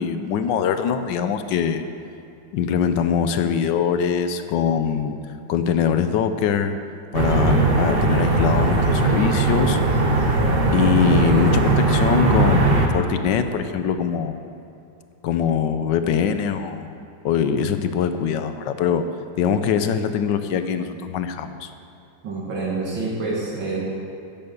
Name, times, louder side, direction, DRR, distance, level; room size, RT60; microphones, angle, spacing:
voice 1, 0.0-1.8 2.5-5.1 5.5-6.8 7.1-9.8 10.7-14.4 15.2-16.9 17.2-19.0 19.4-21.7, left 7 dB, 70° left, 9 dB, 1.3 m, -22 dB
sound 1, 7.1-12.9, right 2 dB, 40° right, 1.0 m, -19 dB
voice 2, 11.0-11.5 22.2-23.8, right 3 dB, 75° right, -4 dB, 2.4 m, -27 dB
10.5 x 10.0 x 6.9 m, 2.6 s
omnidirectional pair, 2.1 m